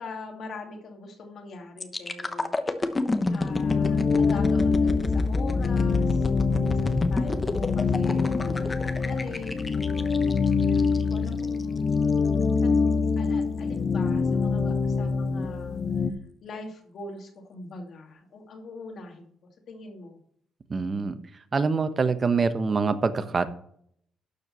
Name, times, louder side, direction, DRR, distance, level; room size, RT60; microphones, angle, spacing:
voice 1, 0.0-2.5 3.3-6.3 6.8-9.8 10.6-12.0 12.6-15.8 16.4-20.2, left 3 dB, 60° left, 3 dB, 2.5 m, -42 dB
sound 1, 1.8-11.6 12.1-12.3, left 3 dB, 25° left, 1.1 m, -29 dB
sound 2, 3.5-16.1, left 4 dB, 40° left, 0.8 m, -25 dB
voice 2, 20.7-21.2 21.5-23.5, right 4 dB, 35° right, 11 dB, 1.1 m, -25 dB
12.0 x 4.7 x 6.8 m, 0.65 s
cardioid pair, 90°, 0 cm